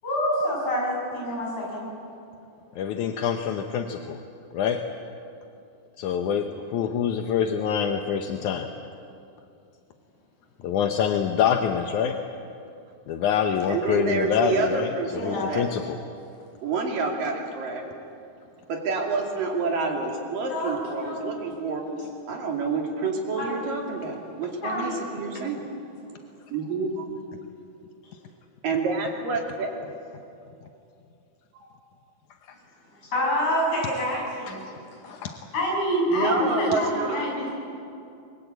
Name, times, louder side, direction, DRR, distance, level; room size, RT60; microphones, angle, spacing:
voice 1, 0.0-1.9 15.1-15.5 20.5-21.4 21.8-21.9 23.4-23.5 24.6-25.1 33.1-34.6 35.0-35.2 35.5-37.5, equal, 45° left, -3 dB, 8.9 m, -27 dB
voice 2, 2.8-4.2 4.5-4.8 6.0-8.7 10.6-12.2 13.1-16.0 25.4-25.5 34.5-34.6 35.1-35.4, left 8 dB, 70° left, 5 dB, 2.0 m, -26 dB
voice 3, 13.7-15.7 16.6-17.9 18.7-21.9 22.3-25.6 26.5-27.1 28.6-29.7 31.6-31.7 36.1-37.3, right 4 dB, 60° right, 1 dB, 4.2 m, -28 dB
28.0 x 22.5 x 8.3 m, 2.6 s
omnidirectional pair, 4.5 m